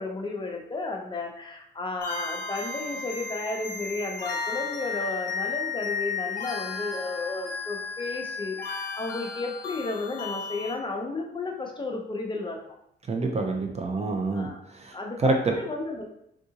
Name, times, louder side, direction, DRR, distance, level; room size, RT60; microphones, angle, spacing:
voice 1, 0.0-12.6 14.3-14.6 14.9-16.1, left 3 dB, 25° left, 1 dB, 0.7 m, -33 dB
sound 1, 2.0-10.7, left 5 dB, 45° left, 1.0 m, -34 dB
voice 2, 13.1-14.5 14.7-15.3, right 3 dB, 35° right, 2 dB, 0.5 m, -27 dB
3.6 x 2.6 x 2.8 m, 0.73 s
cardioid pair, 90°, 20 cm